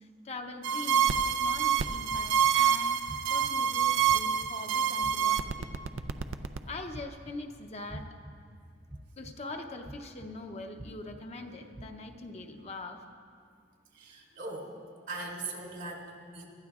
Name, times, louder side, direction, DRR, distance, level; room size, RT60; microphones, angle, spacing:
voice 1, 0.2-3.0 3.3-5.7 6.7-8.1 9.2-13.0, left 2 dB, 35° left, 4 dB, 0.7 m, -42 dB
sound 1, 0.6-6.6, right 8 dB, 80° right, 0.5 m, -27 dB
sound 2, 2.1-2.5 3.1-3.5 4.1-4.5 5.0-5.4 6.0-6.4 6.9-7.3 7.9-8.3 8.9-9.3 9.8-10.3 10.8-11.2 11.7-11.8, right 1 dB, 15° right, 0.5 m, -44 dB
voice 2, 13.9-14.7 15.1-16.5, right 2 dB, 65° right, -2 dB, 2.8 m, -40 dB
24.5 x 12.0 x 2.4 m, 2.2 s
head